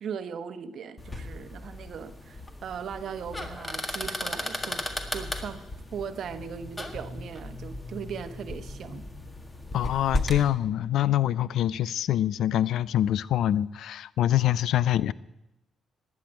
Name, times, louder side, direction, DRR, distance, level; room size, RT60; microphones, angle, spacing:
voice 1, 0.0-4.9 5.1-5.6 5.9-9.0, right 7 dB, 65° right, 0.9 m, -38 dB
sound 1, 1.0-10.4, left 1 dB, 20° left, 1.6 m, -35 dB
voice 2, 9.7-15.1, left 12 dB, 75° left, 0.4 m, -25 dB
11.5 x 8.5 x 9.1 m
cardioid pair, 90°, 0 cm